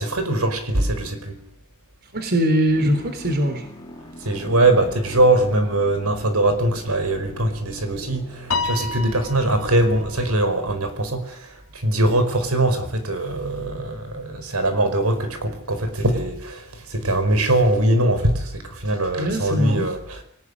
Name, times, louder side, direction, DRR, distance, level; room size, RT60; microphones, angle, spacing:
voice 1, 0.0-1.4 4.2-20.2, right 1 dB, 85° right, 5.0 m, -22 dB
voice 2, 2.1-3.7 19.2-19.9, equal, 45° right, 3.7 m, -21 dB
sound 1, 2.7-10.3, equal, 20° left, 4.7 m, -41 dB
Piano, 8.5-11.0, left 3 dB, 75° left, 2.8 m, -30 dB
25.5 x 18.5 x 9.9 m
head